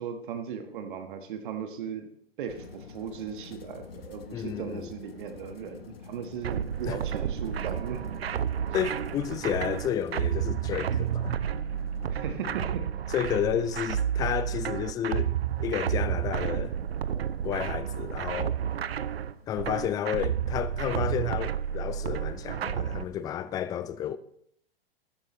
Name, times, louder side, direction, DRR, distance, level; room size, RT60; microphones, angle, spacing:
voice 1, 0.0-2.1 2.4-8.3 9.4-9.6 12.1-12.9, right 7 dB, 55° right, 1.5 m, -37 dB
sound 1, 2.5-12.6, left 5 dB, 70° left, 1.2 m, -46 dB
voice 2, 4.3-4.9 6.9-7.0 8.7-11.4 13.1-15.3 15.6-16.8 17.4-18.6 19.5-24.2, left 10 dB, 15° left, 0.4 m, -31 dB
sound 2, 6.4-23.0, right 9 dB, 80° right, 0.6 m, -31 dB
sound 3, 15.1-23.3, left 3 dB, 85° left, 5.2 m, -60 dB
13.5 x 13.0 x 3.1 m
figure-of-eight pair, 110°, 30 cm